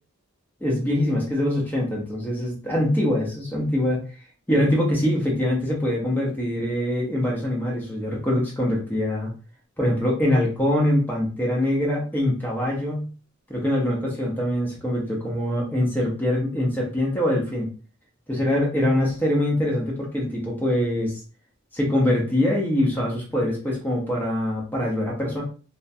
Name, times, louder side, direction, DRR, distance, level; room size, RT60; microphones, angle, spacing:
voice 1, 0.6-4.0 4.5-9.3 9.8-13.1 13.5-17.7 18.3-21.2 21.7-25.4, left 1 dB, 10° left, -3 dB, 0.7 m, -23 dB
2.2 x 2.1 x 2.7 m, 0.37 s
head